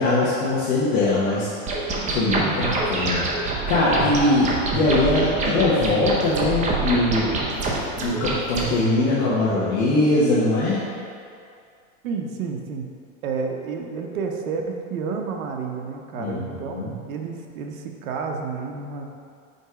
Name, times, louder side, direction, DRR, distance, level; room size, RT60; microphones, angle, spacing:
voice 1, 0.0-3.2 3.7-7.6 8.0-10.8 16.1-16.9, left 2 dB, 50° left, -8 dB, 1.2 m, -22 dB
sound 1, 1.7-8.7, right 3 dB, 20° right, 0.7 m, -25 dB
voice 2, 2.4-2.7 12.0-12.9 13.2-19.0, right 5 dB, 85° right, 2 dB, 0.9 m, -30 dB
5.4 x 4.0 x 4.8 m, 2.3 s
supercardioid pair, 145°, 40 cm